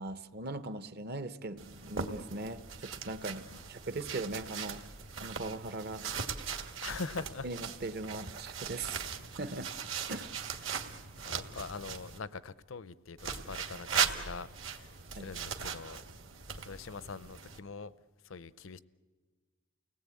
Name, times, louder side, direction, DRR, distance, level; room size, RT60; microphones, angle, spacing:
voice 1, 0.0-4.8 5.2-6.1 7.4-9.0 9.4-9.7 10.1-10.4 15.1-15.3, right 2 dB, 50° right, 0.9 m, -40 dB
sound 1, 1.6-12.2 13.2-17.6, right 6 dB, 65° right, 1.7 m, -39 dB
voice 2, 6.8-7.5 10.6-16.0 16.6-17.9 18.2-18.8, left 4 dB, 70° left, 0.7 m, -43 dB
29.5 x 18.5 x 8.5 m
head